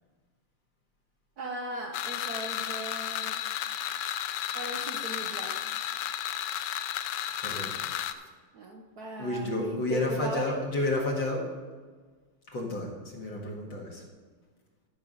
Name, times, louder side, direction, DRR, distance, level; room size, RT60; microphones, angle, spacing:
voice 1, 1.4-3.4 4.5-5.7 8.5-10.5, right 2 dB, 60° right, 3 dB, 1.0 m, -38 dB
sound 1, 1.9-8.1, left 10 dB, 80° left, 1.0 m, -33 dB
voice 2, 7.4-7.9 9.2-11.4 12.5-14.0, left 2 dB, 60° left, -1 dB, 2.5 m, -31 dB
13.0 x 6.2 x 5.3 m, 1.5 s
omnidirectional pair, 2.4 m